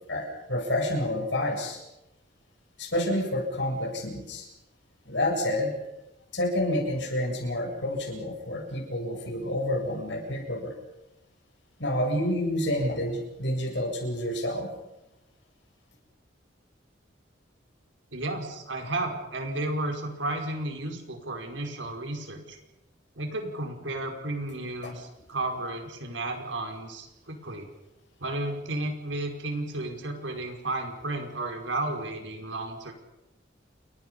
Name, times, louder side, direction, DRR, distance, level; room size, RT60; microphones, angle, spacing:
voice 1, 0.1-1.8 2.8-4.5 5.1-5.7 6.3-10.7 11.8-14.7 24.8-24.9, left 1 dB, 70° left, 2 dB, 7.9 m, -29 dB
voice 2, 18.1-22.6 23.2-27.7 28.2-32.9, right 2 dB, 80° right, 3 dB, 5.3 m, -33 dB
30.0 x 23.0 x 5.6 m, 0.92 s
head